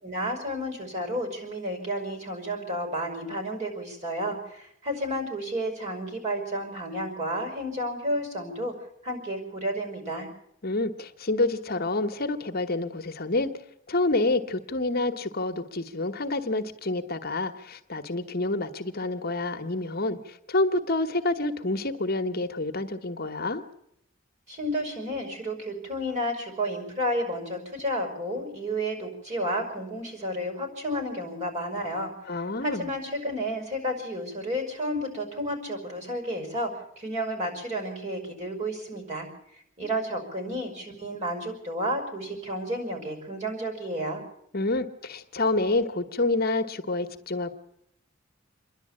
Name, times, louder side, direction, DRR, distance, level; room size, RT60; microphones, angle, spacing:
voice 1, 0.0-8.7 9.0-10.3 24.5-36.7 37.0-39.3 39.8-44.2, equal, 35° right, 4 dB, 5.8 m, -31 dB
voice 2, 10.6-13.5 13.9-23.6 32.3-32.9 44.5-47.5, left 2 dB, 50° left, 8 dB, 1.2 m, -28 dB
27.5 x 11.0 x 8.7 m, 0.76 s
head